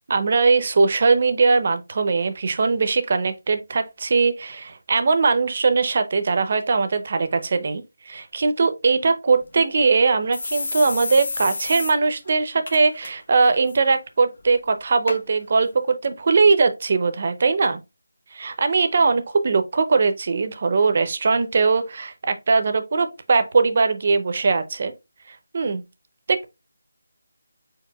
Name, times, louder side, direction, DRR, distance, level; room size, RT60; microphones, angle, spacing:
voice 1, 0.1-17.8 18.3-24.9 25.5-25.8 26.3-26.4, right 4 dB, 35° right, 0.6 m, -20 dB
sound 1, 9.4-9.5 9.8-9.9 10.3-11.9 12.3-12.4 12.7-13.1 13.4-13.8 14.4-14.5 15.1-15.2 15.9-16.0, left 3 dB, 50° left, 0.9 m, -30 dB
4.7 x 4.6 x 2.3 m
figure-of-eight pair, 175°, 0 cm